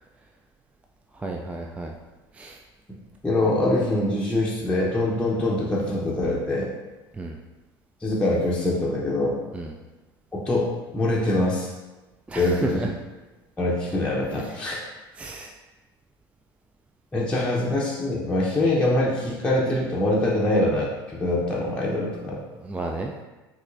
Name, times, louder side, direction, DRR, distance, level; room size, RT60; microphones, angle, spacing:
voice 1, 1.1-1.9 2.3-2.6 7.1-7.4 9.5-9.8 12.3-12.9 14.4-14.6 15.2-15.5 22.6-23.1, right 2 dB, 10° right, 1 dB, 0.3 m, -33 dB
voice 2, 3.2-6.7 8.0-9.4 10.3-10.7 10.9-11.7 12.3-12.9 13.6-14.8 17.1-22.4, left 1 dB, 10° left, -6 dB, 0.7 m, -24 dB
5.2 x 3.0 x 2.5 m, 1.2 s
figure-of-eight pair, 70°, 13 cm